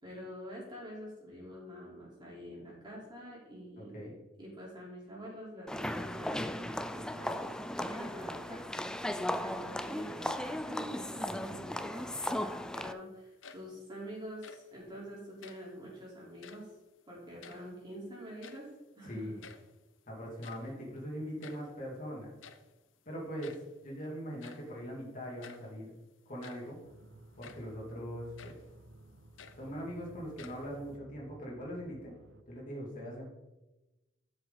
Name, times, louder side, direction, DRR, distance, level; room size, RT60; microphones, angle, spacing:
voice 1, 0.0-4.1 4.4-8.9 9.2-16.7 17.1-18.7 19.0-19.4, equal, 25° right, -5 dB, 3.7 m, -46 dB
voice 2, 3.8-4.2 11.3-11.6 19.0-19.4 20.1-22.3 23.1-25.9 26.3-26.8 27.4-28.6 29.6-32.1 32.5-33.2, equal, 45° left, -4 dB, 2.5 m, -41 dB
sound 1, 5.7-12.9, left 1 dB, 5° left, 0.3 m, -36 dB
sound 2, 13.2-13.9 14.2-14.8 15.3-15.8 16.3-16.8 17.1-18.0 18.2-18.9 19.1-19.2 19.4-19.8 20.2-21.8 22.4-22.8 23.4-23.8 24.4-24.7 25.4-25.7 26.2-26.8 27.4-27.7 28.4-28.7 29.1-30.0 30.4-31.0, left 6 dB, 80° left, 0.8 m, -53 dB
sound 3, 26.8-32.4, right 2 dB, 70° right, 0.7 m, -56 dB
12.5 x 6.1 x 3.9 m, 1.1 s
head